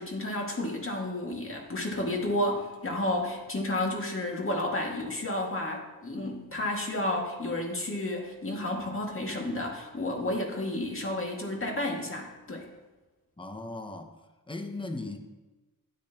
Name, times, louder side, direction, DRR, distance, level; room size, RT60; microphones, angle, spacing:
voice 1, 0.0-12.7, left 1 dB, 35° left, 0 dB, 2.1 m, -31 dB
voice 2, 13.4-14.1 14.5-15.2, left 2 dB, 15° left, 5 dB, 1.0 m, -37 dB
12.0 x 10.5 x 2.9 m, 1.1 s
wide cardioid pair, 95°, 37 cm